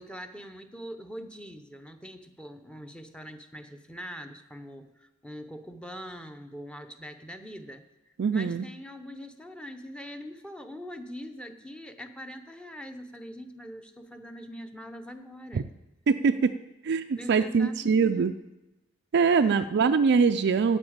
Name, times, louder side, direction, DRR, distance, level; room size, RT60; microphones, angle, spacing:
voice 1, 0.0-7.8 8.3-15.7 17.2-18.3 19.4-19.6, equal, 5° left, 7 dB, 0.8 m, -43 dB
voice 2, 8.2-8.6 15.5-15.6 16.1-16.5 16.8-18.3 19.1-20.8, right 5 dB, 55° right, 8 dB, 0.4 m, -23 dB
9.7 x 8.0 x 8.7 m, 1.0 s
head